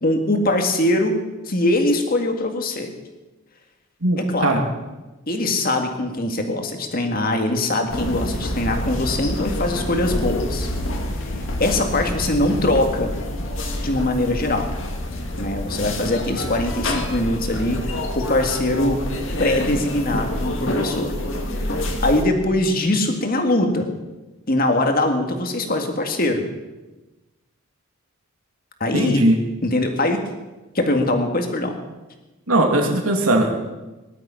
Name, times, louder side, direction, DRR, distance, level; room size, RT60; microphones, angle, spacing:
voice 1, 0.0-2.9 4.2-4.6 5.3-10.7 11.6-13.2 13.8-14.7 15.4-19.0 19.4-21.1 21.6-23.9 24.5-26.5 28.8-29.3 29.6-30.3 30.7-31.8, left 1 dB, 40° left, 4 dB, 1.9 m, -22 dB
voice 2, 4.0-4.6 28.9-29.4 32.5-33.6, right 1 dB, 80° right, 3 dB, 2.7 m, -19 dB
sound 1, 7.9-22.2, left 1 dB, 60° left, 2.0 m, -27 dB
18.5 x 11.5 x 5.7 m, 1.1 s
head